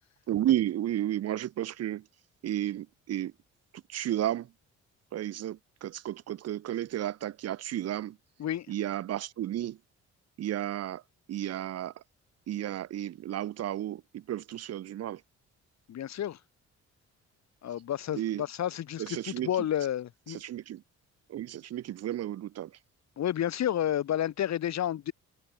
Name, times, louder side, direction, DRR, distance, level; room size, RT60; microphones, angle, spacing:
voice 1, 0.3-2.1 2.4-3.3 3.7-4.5 5.1-8.2 8.7-9.8 10.4-11.0 11.3-12.0 12.5-15.2 18.1-18.4 19.0-19.5 20.3-20.8 21.3-22.8, right 12 dB, 55° right, 0.6 m, -32 dB
voice 2, 15.9-16.4 17.6-20.4 23.2-25.1, left 11 dB, 65° left, 1.8 m, -31 dB
cardioid pair, 90°, 30 cm